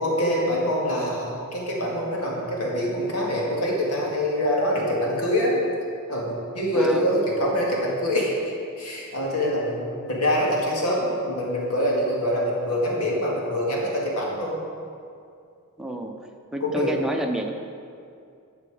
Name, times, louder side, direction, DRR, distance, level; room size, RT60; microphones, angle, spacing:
voice 1, 0.0-5.6 6.1-14.6 16.6-16.9, equal, 85° left, -3 dB, 2.1 m, -25 dB
voice 2, 15.8-16.2 16.5-17.5, right 1 dB, ahead, 1 dB, 0.7 m, -29 dB
12.0 x 7.0 x 5.0 m, 2.4 s
head